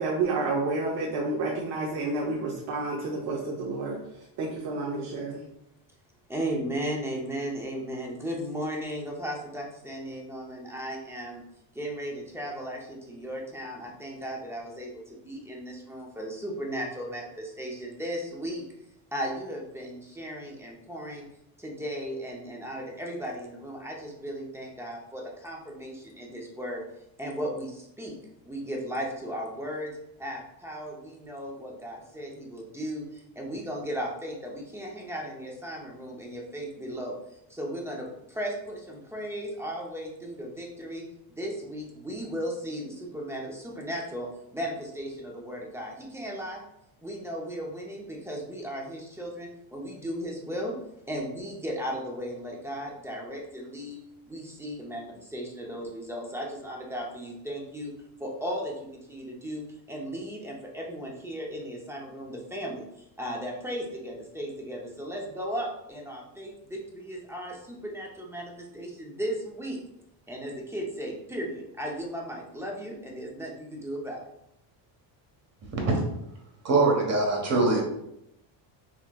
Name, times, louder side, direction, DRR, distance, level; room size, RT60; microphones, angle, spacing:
voice 1, 0.0-4.0 4.4-5.4, right 3 dB, 50° right, -1 dB, 0.8 m, -30 dB
voice 2, 6.3-11.4 11.7-18.6 19.1-21.2 21.6-26.8 27.2-28.1 28.5-29.9 30.2-37.2 37.5-41.0 41.3-46.6 47.0-50.8 51.1-54.0 54.3-57.9 58.2-59.6 59.9-69.8 70.3-74.2, equal, 5° right, -1 dB, 0.5 m, -36 dB
voice 3, 76.6-77.8, right 3 dB, 30° right, 0 dB, 1.1 m, -23 dB
5.8 x 2.9 x 2.2 m, 0.81 s
cardioid pair, 155°, 49 cm